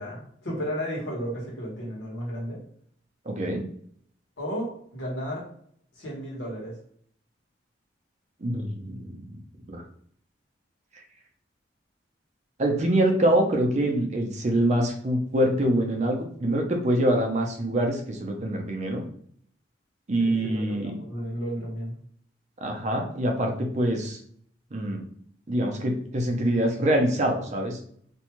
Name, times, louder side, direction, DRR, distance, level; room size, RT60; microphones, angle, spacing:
voice 1, 0.0-2.6 4.4-5.4 5.9-6.8 20.2-21.9, equal, 90° left, -3 dB, 1.2 m, -33 dB
voice 2, 3.3-3.6 8.4-9.3 9.7-9.8 12.6-19.0 20.1-20.9 22.6-24.2 24.7-25.0 25.5-27.8, right 1 dB, 40° right, 3 dB, 0.5 m, -25 dB
2.6 x 2.2 x 2.9 m, 0.62 s
head